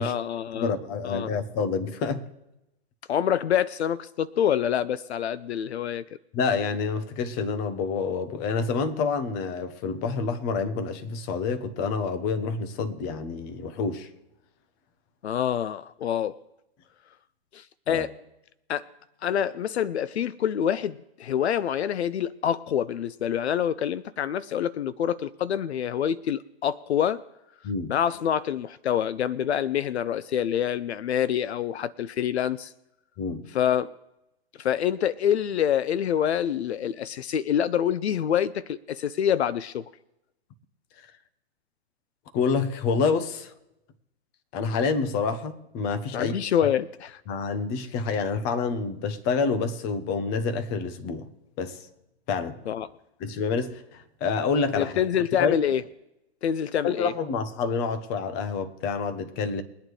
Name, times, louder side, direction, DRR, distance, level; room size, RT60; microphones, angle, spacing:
voice 1, 0.0-0.7 1.0-1.3 3.1-6.0 15.2-16.4 17.5-18.1 18.7-18.9 19.2-27.2 27.9-32.7 33.5-33.9 34.6-39.8 46.1-47.1 52.7-52.9 54.8-55.8 56.4-57.1, left 9 dB, 80° left, 0.5 m, -26 dB
voice 2, 0.5-2.3 6.3-14.1 17.9-18.1 27.6-27.9 33.2-33.5 42.3-43.5 44.5-46.3 47.3-51.3 51.6-51.8 52.3-52.6 53.2-55.0 55.4-55.8 56.8-59.6, left 5 dB, 30° left, 1.1 m, -28 dB
22.5 x 9.1 x 3.2 m
hypercardioid pair, 130°, 32 cm